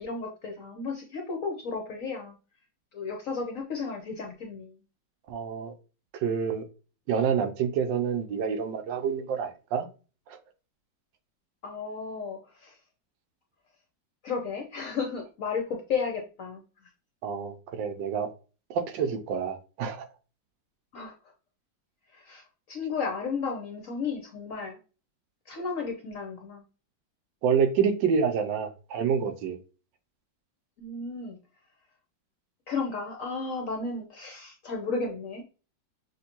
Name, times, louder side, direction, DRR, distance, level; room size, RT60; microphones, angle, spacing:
voice 1, 0.0-2.4 2.9-4.8 11.6-12.8 14.2-16.6 20.9-21.1 22.1-24.8 25.5-26.6 30.8-31.4 32.7-35.4, left 4 dB, 60° left, 0.9 m, -33 dB
voice 2, 5.3-5.7 6.2-6.7 7.1-9.9 10.3-10.4 17.2-18.3 18.7-20.0 27.4-29.6, right 6 dB, 75° right, 1.3 m, -27 dB
6.3 x 2.5 x 2.9 m
omnidirectional pair, 2.1 m